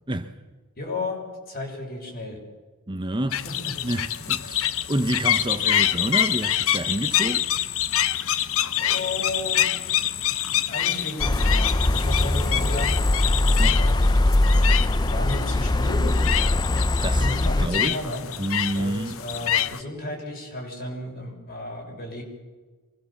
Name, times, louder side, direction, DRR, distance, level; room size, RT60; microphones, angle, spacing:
voice 1, 0.8-2.4 3.4-3.7 8.8-10.4 10.7-13.0 13.3-14.2 15.0-16.1 17.1-18.3 18.7-22.2, left 2 dB, 45° left, 6.6 m, -34 dB
voice 2, 2.9-3.4 3.8-7.5 13.6-13.8 16.8-17.3 17.6-18.0 18.4-19.2, right 1 dB, 20° right, 1.0 m, -28 dB
sound 1, 3.3-19.8, left 11 dB, 65° left, 0.8 m, -26 dB
sound 2, 11.2-17.7, left 1 dB, 20° left, 0.6 m, -21 dB
25.0 x 21.0 x 7.3 m
head